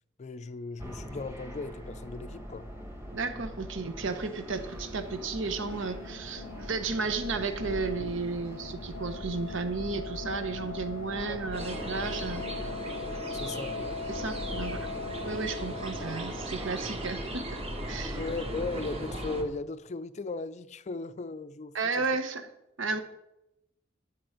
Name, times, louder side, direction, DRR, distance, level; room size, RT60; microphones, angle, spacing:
voice 1, 0.2-2.7 11.3-11.4 13.3-13.8 18.2-22.0, left 3 dB, 35° left, 0.4 m, -37 dB
sound 1, 0.8-19.5, equal, 15° right, 1.4 m, -41 dB
voice 2, 3.1-12.5 14.1-14.9 15.2-17.6 17.9-18.2 21.7-22.5 22.8-23.0, right 4 dB, 70° right, 1.0 m, -33 dB
sound 2, 4.7-16.7, left 5 dB, 85° left, 0.6 m, -42 dB
sound 3, 11.5-19.4, right 1 dB, 30° right, 1.2 m, -39 dB
11.0 x 8.9 x 5.0 m
head